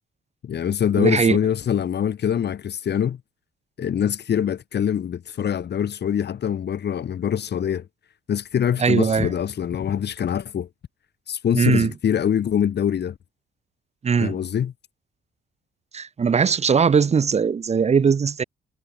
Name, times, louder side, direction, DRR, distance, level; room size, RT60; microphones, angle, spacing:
voice 1, 0.4-3.2 3.8-7.9 8.3-10.7 11.3-13.1 14.2-14.7, left 8 dB, 55° left, 4.7 m, -24 dB
voice 2, 1.0-1.4 8.8-9.3 11.5-11.9 14.0-14.4 15.9-18.4, right 6 dB, 35° right, 0.9 m, -20 dB
cardioid pair, 90°, 20 cm